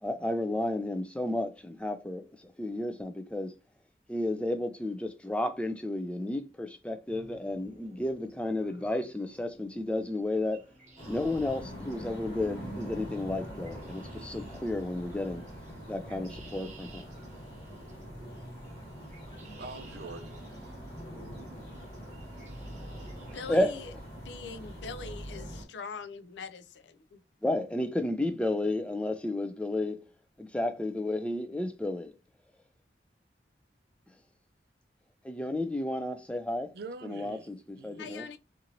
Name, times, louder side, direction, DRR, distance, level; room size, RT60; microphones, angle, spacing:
voice 1, 0.0-3.5 4.1-10.6 11.1-15.4 15.9-17.0 23.5-23.7 27.4-30.0 30.4-32.1 35.2-36.7 37.0-38.3, left 1 dB, 5° left, 0.3 m, -32 dB
sound 1, 7.1-23.6, right 1 dB, 40° right, 0.9 m, -53 dB
sound 2, 11.0-25.6, equal, 35° left, 1.2 m, -44 dB
voice 2, 19.6-20.8 36.7-38.2, right 3 dB, 60° right, 0.4 m, -45 dB
voice 3, 23.3-23.9 24.2-27.2 38.0-38.4, left 5 dB, 80° left, 0.4 m, -42 dB
2.9 x 2.5 x 2.7 m
head